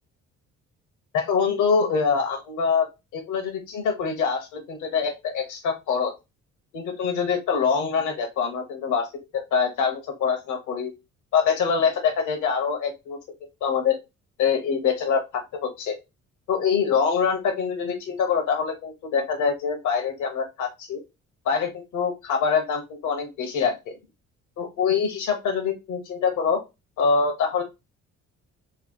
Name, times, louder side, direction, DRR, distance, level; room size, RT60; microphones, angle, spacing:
voice 1, 1.1-2.9 3.1-6.1 6.7-9.1 9.5-10.9 11.3-13.2 13.6-14.0 14.4-15.9 16.5-21.0 21.4-23.9 24.6-26.6 27.0-27.6, left 6 dB, 80° left, 3 dB, 1.1 m, -24 dB
3.2 x 2.2 x 4.2 m, 0.24 s
cardioid pair, 90°, 30 cm